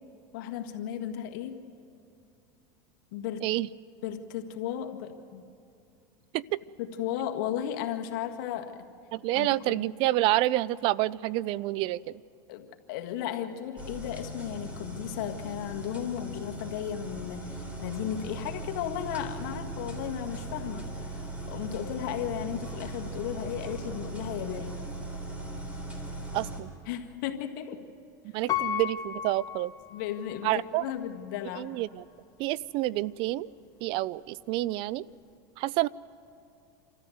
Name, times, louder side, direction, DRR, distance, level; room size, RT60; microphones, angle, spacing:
voice 1, 0.3-1.6 3.1-3.5 4.0-5.4 6.8-8.8 9.3-9.9 12.5-24.8 26.9-27.8 29.9-31.8, left 10 dB, 70° left, 4 dB, 1.7 m, -35 dB
voice 2, 9.1-12.1 26.3-26.7 28.3-29.7 30.4-30.9 31.6-32.0 32.4-33.5 33.8-35.0 35.6-35.9, right 16 dB, 50° right, 22 dB, 0.4 m, -28 dB
sound 1, 13.8-26.6, right 1 dB, 10° right, 3.7 m, -39 dB
Piano, 28.5-30.5 31.0-31.1, left 10 dB, 35° left, 1.3 m, -33 dB
28.0 x 13.5 x 7.9 m, 2.5 s
supercardioid pair, 120°, 11 cm